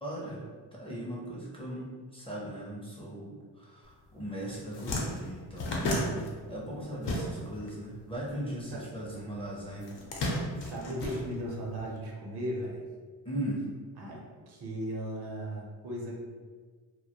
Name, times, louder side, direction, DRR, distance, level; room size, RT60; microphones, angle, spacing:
voice 1, 0.0-0.4 0.7-9.9 11.1-11.2 13.2-13.6, right 1 dB, 15° left, -5 dB, 0.5 m, -38 dB
sound 1, 4.1-4.3 4.5-7.7 8.0-9.1 9.8-11.8, left 1 dB, 70° left, 0.7 m, -33 dB
voice 2, 10.6-12.8 14.0-14.2 14.5-16.1, equal, 60° right, -2 dB, 0.7 m, -36 dB
2.1 x 2.1 x 2.8 m, 1.5 s
cardioid pair, 85°, 44 cm